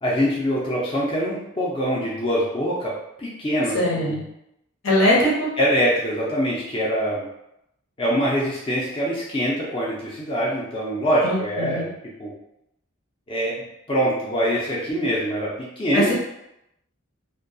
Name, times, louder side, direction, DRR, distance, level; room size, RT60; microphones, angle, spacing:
voice 1, 0.0-2.9 3.2-4.2 5.6-7.2 8.0-11.9 12.2-12.3 13.3-16.1, equal, 25° left, -6 dB, 0.4 m, -24 dB
voice 2, 3.7-4.2 4.8-5.5 11.2-11.9 15.9-16.1, left 1 dB, 75° left, -4 dB, 0.8 m, -21 dB
2.2 x 2.2 x 2.6 m, 0.82 s
head